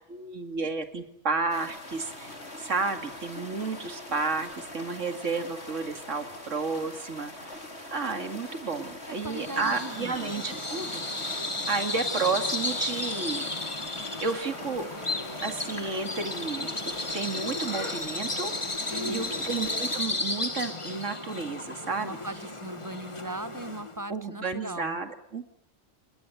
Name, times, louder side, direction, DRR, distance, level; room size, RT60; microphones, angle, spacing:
voice 1, 0.1-2.3 2.6-7.6 7.9-11.0 11.7-13.5 14.2-14.9 15.4-16.7 17.1-18.5 19.0-22.2 24.1-25.5, right 4 dB, 85° right, 7 dB, 2.7 m, -32 dB
sound 1, 1.5-20.0, left 1 dB, 60° left, 5.2 m, -43 dB
voice 2, 9.1-10.3 18.9-19.4 22.0-25.0, right 1 dB, 15° right, 14 dB, 1.1 m, -39 dB
Bird vocalization bird call bird song, 9.2-24.0, left 2 dB, 25° left, 1.9 m, -34 dB
sound 2, 14.1-20.5, left 1 dB, 40° right, 7.9 m, -53 dB
28.5 x 21.5 x 8.1 m, 0.73 s
omnidirectional pair, 1.3 m